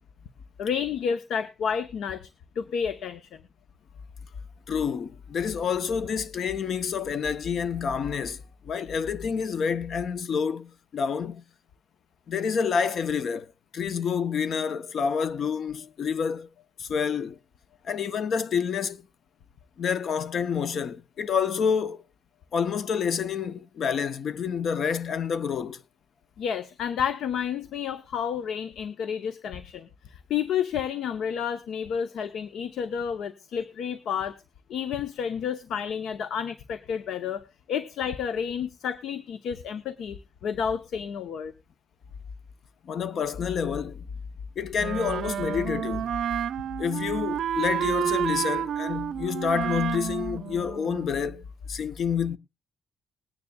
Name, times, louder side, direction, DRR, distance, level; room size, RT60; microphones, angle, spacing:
voice 1, 0.6-2.3 2.6-3.4 26.4-34.4 34.7-41.5, left 7 dB, 90° left, 0.7 m, -30 dB
voice 2, 4.7-11.4 12.3-16.5 16.8-17.4 17.8-19.0 19.8-22.0 22.5-25.8 42.8-44.1 44.6-46.1 46.8-52.4, left 6 dB, 55° left, 0.6 m, -28 dB
Wind instrument woodwind instrument, 44.8-51.4, right 9 dB, 75° right, 0.5 m, -30 dB
20.5 x 9.7 x 2.2 m
wide cardioid pair, 160°, 0 cm